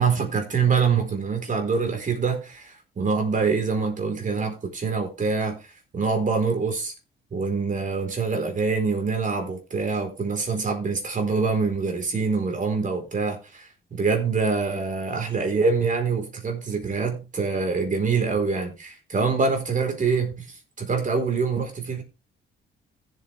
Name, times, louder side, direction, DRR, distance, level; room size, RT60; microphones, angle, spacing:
voice 1, 0.0-5.6 5.9-6.9 7.3-22.0, right 5 dB, 40° right, 4.4 m, -25 dB
15.5 x 7.7 x 3.5 m
cardioid pair, 90°, 20 cm